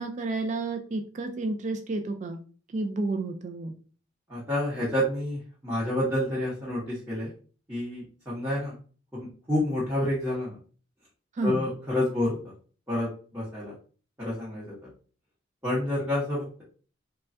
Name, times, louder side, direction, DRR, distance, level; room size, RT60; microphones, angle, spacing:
voice 1, 0.0-2.4 2.7-3.7 11.4-11.6, right 2 dB, 40° right, 5 dB, 0.3 m, -30 dB
voice 2, 4.3-7.3 7.7-8.8 9.1-10.6 11.4-12.4 12.9-13.7 14.2-14.7 15.6-16.6, left 1 dB, 10° right, -9 dB, 0.9 m, -29 dB
3.3 x 2.2 x 2.6 m, 0.40 s
head